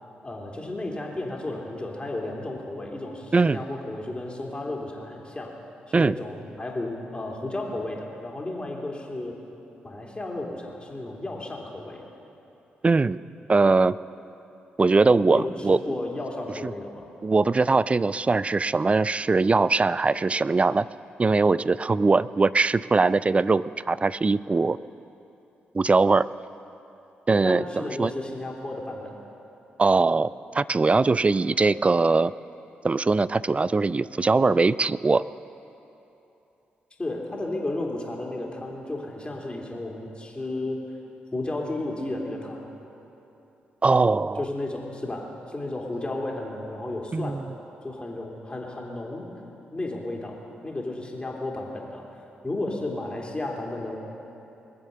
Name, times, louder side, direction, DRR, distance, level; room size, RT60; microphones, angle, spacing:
voice 1, 0.2-5.6 5.9-9.3 9.8-12.0 15.2-17.1 27.4-29.1 37.0-40.8 41.3-42.7 44.4-47.4 47.8-49.3 49.7-54.0, left 2 dB, 25° left, -1 dB, 3.3 m, -33 dB
voice 2, 12.8-13.2 13.5-14.0 14.8-15.8 16.6-16.7 17.2-20.9 21.2-24.8 25.7-26.3 27.3-28.1 29.8-32.3 32.8-35.2 43.8-44.4 47.1-47.4, right 3 dB, 30° right, 18 dB, 0.4 m, -21 dB
21.5 x 7.3 x 6.8 m, 2.9 s
hypercardioid pair, 40°, 4 cm